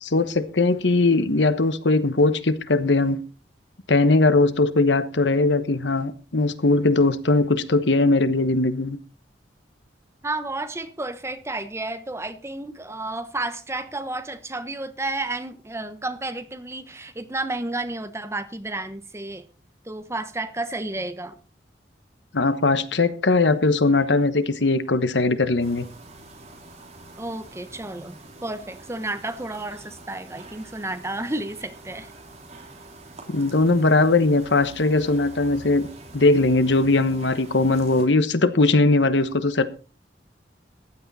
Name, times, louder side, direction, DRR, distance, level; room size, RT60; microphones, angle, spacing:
voice 1, 0.0-3.2 3.9-9.0 22.3-25.9 33.3-35.9 36.1-39.7, left 2 dB, 90° left, 1.2 m, -20 dB
voice 2, 10.2-19.5 19.8-21.4 27.2-32.1, right 2 dB, 15° right, 1.1 m, -31 dB
sound 1, 25.6-38.1, right 2 dB, 40° right, 3.6 m, -45 dB
15.5 x 11.0 x 4.2 m
head